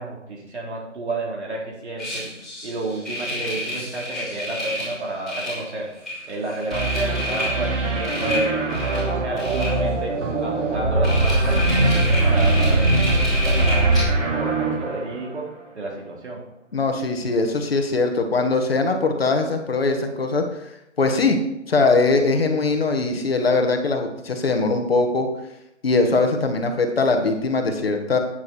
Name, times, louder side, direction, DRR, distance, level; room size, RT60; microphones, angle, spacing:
voice 1, 0.0-2.2 2.6-6.0 6.2-16.4, right 2 dB, 65° right, -2 dB, 4.2 m, -31 dB
sound 1, 2.0-2.7 3.0-5.0 5.3-5.6 6.1-6.2 6.5-7.6 8.0-9.1 9.4-9.8 10.8-14.0, right 1 dB, ahead, 3.3 m, -22 dB
sound 2, 6.7-15.8, right 3 dB, 85° right, 3.5 m, -26 dB
voice 2, 16.7-20.4 21.0-21.4 21.7-25.3 25.8-28.2, left 3 dB, 50° left, 4 dB, 1.9 m, -21 dB
9.8 x 9.5 x 4.5 m, 0.86 s
hypercardioid pair, 175°, 37 cm